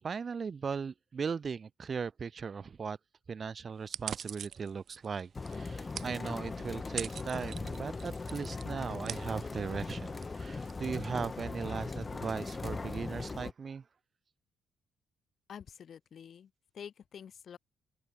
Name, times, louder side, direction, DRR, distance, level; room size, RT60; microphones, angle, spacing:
voice 1, 0.0-3.0 3.3-13.8, right 5 dB, 40° right, 0.7 m, -38 dB
sound 1, 3.8-11.6, right 8 dB, 60° right, 1.2 m, -45 dB
sound 2, 5.3-13.5, left 3 dB, 25° left, 0.3 m, -39 dB
voice 2, 15.5-17.6, left 8 dB, 55° left, 5.7 m, -48 dB
open air
cardioid pair, 90°, 0 cm